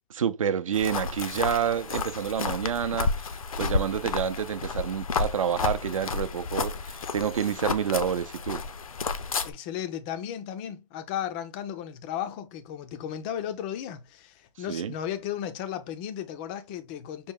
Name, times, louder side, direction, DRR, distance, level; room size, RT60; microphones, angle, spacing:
voice 1, 0.2-3.1 3.6-8.7 14.7-14.9, right 8 dB, 75° right, 0.6 m, -28 dB
sound 1, 0.7-9.5, left 4 dB, 90° left, 0.6 m, -31 dB
voice 2, 9.4-17.3, left 10 dB, 15° left, 0.3 m, -35 dB
5.3 x 2.1 x 3.6 m
hypercardioid pair, 150°, 17 cm